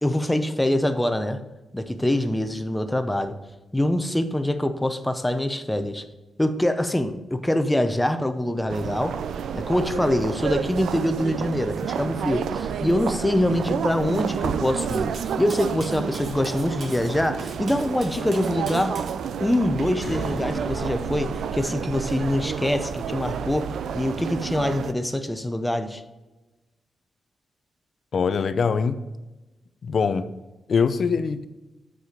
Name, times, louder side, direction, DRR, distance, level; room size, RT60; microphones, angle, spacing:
voice 1, 0.0-1.4 1.7-3.4 3.7-6.0 6.4-9.2 9.5-19.0 19.4-26.0, left 1 dB, 5° left, 8 dB, 0.6 m, -24 dB
sound 1, 8.7-24.9, right 7 dB, 85° right, 0.4 m, -30 dB
Cutlery silverware, 14.8-19.2, right 3 dB, 55° right, 1.4 m, -42 dB
sound 2, 20.0-24.8, equal, 35° right, 2.2 m, -41 dB
voice 2, 28.1-29.0 29.8-30.3 30.7-31.5, left 5 dB, 50° left, 12 dB, 0.5 m, -23 dB
8.1 x 4.8 x 5.1 m, 1.1 s
wide cardioid pair, 125°, 0 cm